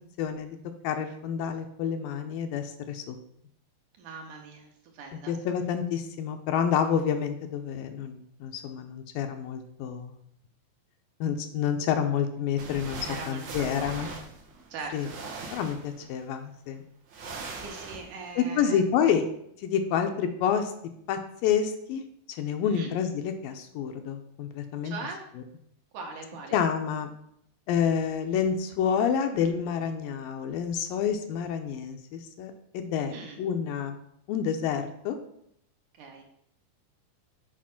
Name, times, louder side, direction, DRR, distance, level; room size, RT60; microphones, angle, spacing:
voice 1, 0.2-0.6 0.8-3.2 5.3-10.1 11.2-14.1 14.9-15.1 15.5-16.8 18.4-19.3 19.6-20.7 21.1-22.0 22.4-25.0 26.5-27.1 27.7-34.0 34.3-35.2, left 8 dB, 80° left, 6 dB, 2.3 m, -28 dB
voice 2, 4.0-4.7 4.9-5.3 13.0-14.1 14.7-15.1 17.5-18.8 22.6-22.9 24.8-25.2 25.9-26.6 32.9-33.4 36.0-36.2, right 4 dB, 70° right, 2 dB, 2.3 m, -41 dB
sound 1, 12.6-16.3 17.1-18.3, right 3 dB, 90° right, 1.1 m, -41 dB
7.5 x 4.6 x 5.8 m, 0.72 s
omnidirectional pair, 4.2 m